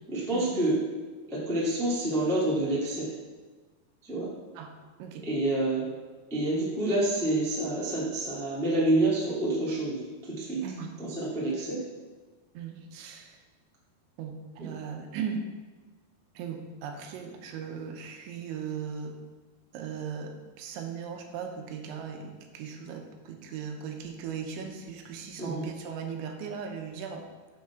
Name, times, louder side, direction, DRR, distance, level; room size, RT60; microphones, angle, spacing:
voice 1, 0.1-0.8 1.3-3.1 4.0-4.3 5.2-5.8 6.3-10.0 10.4-10.6 11.0-11.8 14.6-14.7 25.4-25.6, right 1 dB, 5° left, -7 dB, 0.3 m, -27 dB
voice 2, 10.6-10.9 11.5-11.6 12.5-13.4 14.2-15.4 16.3-19.2 19.7-27.3, right 6 dB, 80° right, 4 dB, 3.3 m, -38 dB
7.4 x 6.1 x 5.7 m, 1.3 s
omnidirectional pair, 5.3 m